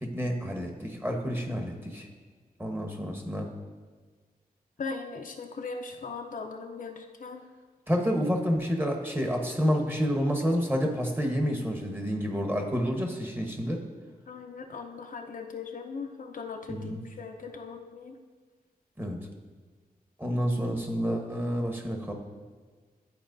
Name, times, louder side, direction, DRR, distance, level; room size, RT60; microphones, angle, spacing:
voice 1, 0.0-2.1 2.6-3.5 7.9-13.8 16.7-17.0 19.0-19.3 20.2-22.1, equal, 15° right, 2 dB, 1.1 m, -29 dB
voice 2, 4.8-7.4 14.3-18.1, left 4 dB, 60° left, 3 dB, 0.6 m, -39 dB
12.5 x 4.3 x 2.6 m, 1.5 s
wide cardioid pair, 90°, 16 cm